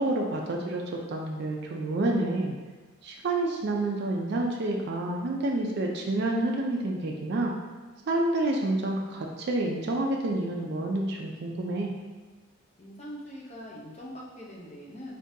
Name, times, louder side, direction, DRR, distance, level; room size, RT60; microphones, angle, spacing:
voice 1, 0.0-2.6 3.0-7.5 8.1-11.9, right 2 dB, 50° right, 0 dB, 0.4 m, -28 dB
voice 2, 12.8-15.2, equal, 30° left, -5 dB, 0.6 m, -42 dB
3.7 x 2.6 x 2.6 m, 1.3 s
head